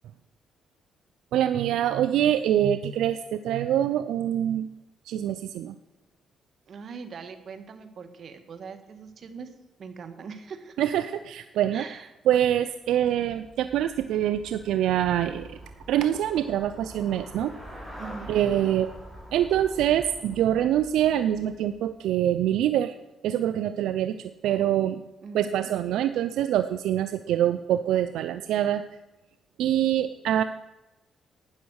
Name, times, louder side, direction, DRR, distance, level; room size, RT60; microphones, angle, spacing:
voice 1, 1.3-4.7 5.0-5.7 10.8-11.8 12.3-15.6 15.9-17.5 18.3-18.9 19.3-22.9 23.2-25.0 25.3-28.8 29.6-30.4, right 11 dB, 85° right, 11 dB, 0.5 m, -25 dB
voice 2, 6.7-9.5 9.8-10.8 11.7-12.1 18.0-18.3 25.2-25.7, right 5 dB, 55° right, 8 dB, 1.7 m, -41 dB
Traffic noise roadway noise / Bicycle, 12.9-22.0, equal, 5° left, 5.3 m, -45 dB
12.5 x 9.5 x 6.4 m, 1.0 s
cardioid pair, 90°, 0 cm